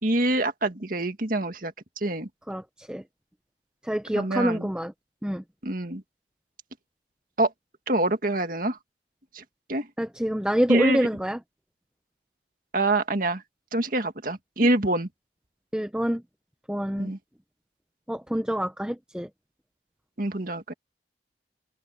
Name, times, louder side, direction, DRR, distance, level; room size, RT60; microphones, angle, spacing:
voice 1, 0.0-1.7 2.0-2.3 4.1-4.7 5.6-6.0 7.4-7.5 7.9-8.8 9.3-9.4 9.7-9.9 10.7-11.1 12.7-13.4 13.7-15.1 17.0-17.2 20.2-20.7, right 2 dB, 50° right, 2.0 m, -25 dB
voice 2, 3.8-4.9 5.2-5.4 10.0-11.4 15.7-16.2 16.7-17.1 18.1-19.3, equal, 5° right, 0.7 m, -26 dB
head